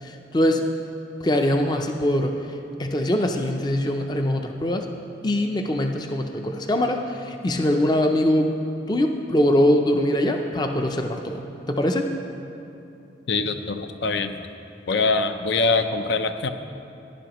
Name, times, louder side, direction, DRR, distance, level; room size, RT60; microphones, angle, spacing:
voice 1, 0.0-0.7 1.2-2.4 2.8-4.9 5.2-8.5 8.9-11.4 11.7-12.1, left 1 dB, 20° left, 4 dB, 0.5 m, -22 dB
voice 2, 13.3-14.4 14.9-16.5, left 3 dB, 70° left, 8 dB, 0.5 m, -23 dB
16.5 x 10.5 x 3.0 m, 2.8 s
head